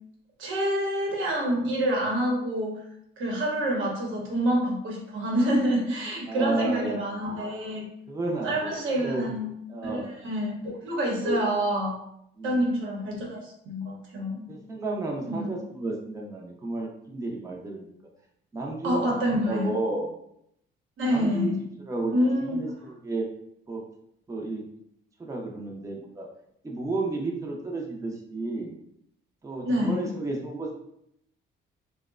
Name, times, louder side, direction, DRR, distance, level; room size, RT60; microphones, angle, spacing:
voice 1, 0.4-2.8 3.2-7.9 8.4-9.5 9.8-12.0 12.4-14.4 15.3-15.6 18.8-19.7 21.0-21.5 22.1-22.6 29.6-30.1, equal, 80° right, -2 dB, 0.8 m, -27 dB
voice 2, 6.3-7.1 8.1-9.3 9.7-10.1 11.2-11.5 12.4-12.7 14.5-17.9 18.5-19.0 19.5-20.1 21.0-23.3 23.7-23.8 24.3-24.6 25.2-26.3 26.6-28.7 29.4-30.8, right 2 dB, 15° right, -1 dB, 0.5 m, -32 dB
2.9 x 2.1 x 2.3 m, 0.74 s
cardioid pair, 90°, 20 cm